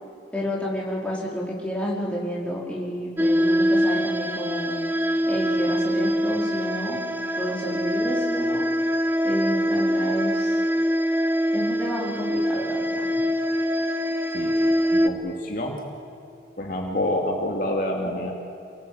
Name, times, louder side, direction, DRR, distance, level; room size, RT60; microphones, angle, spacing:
voice 1, 0.3-4.8 5.3-7.0 7.4-8.6 9.2-10.6 11.5-13.1, left 1 dB, 5° left, -4 dB, 4.6 m, -30 dB
sound 1, 3.2-15.1, equal, 10° right, 0.9 m, -24 dB
voice 2, 14.3-15.8 16.6-18.3, left 1 dB, 50° left, 1 dB, 2.5 m, -28 dB
28.0 x 19.0 x 8.9 m, 2.8 s
head